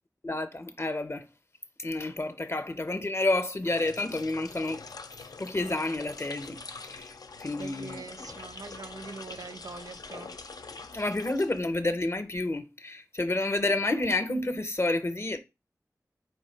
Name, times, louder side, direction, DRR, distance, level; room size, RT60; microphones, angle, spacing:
voice 1, 0.2-1.3 1.8-4.8 5.4-6.6 6.8-7.1 7.4-8.0 10.9-15.4, left 2 dB, 40° left, 0.7 m, -29 dB
sound 1, 3.6-12.0, left 4 dB, 80° left, 0.4 m, -45 dB
voice 2, 7.5-10.3, right 4 dB, 70° right, 0.5 m, -43 dB
4.5 x 2.7 x 4.4 m
wide cardioid pair, 55°, 6 cm